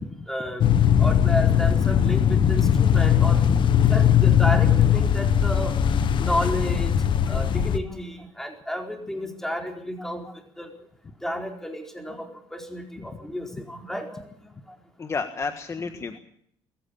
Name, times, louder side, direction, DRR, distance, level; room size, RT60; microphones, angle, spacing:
voice 1, 0.3-0.7 1.0-3.4 3.7-5.8 6.2-10.7 11.2-14.5 15.8-16.0, equal, 5° left, 3 dB, 4.5 m, -32 dB
sound 1, 0.6-7.8, left 9 dB, 50° left, 1.4 m, -19 dB
voice 2, 15.0-16.2, left 4 dB, 30° left, 7 dB, 1.7 m, -31 dB
23.0 x 14.5 x 8.6 m, 0.67 s
cardioid pair, 115°, 10 cm